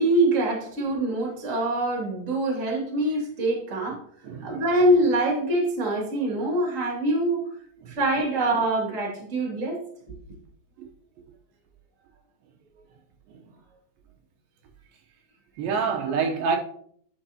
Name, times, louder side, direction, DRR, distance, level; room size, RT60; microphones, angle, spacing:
voice 1, 0.0-4.0 4.4-7.4 7.9-9.8, right 1 dB, 25° right, 2.0 m, -24 dB
voice 2, 4.2-4.6 7.8-7.9 10.8-10.9 15.6-16.6, right 5 dB, 75° right, 2.6 m, -27 dB
11.5 x 5.9 x 2.8 m
omnidirectional pair, 4.4 m